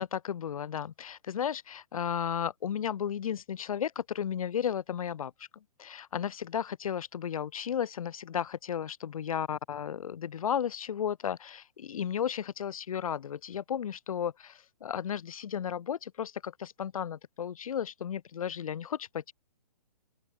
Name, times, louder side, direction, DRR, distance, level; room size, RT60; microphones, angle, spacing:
voice 1, 0.0-5.3 5.8-19.3, left 8 dB, 55° left, 8.0 m, -34 dB
open air
hypercardioid pair, 160°, 21 cm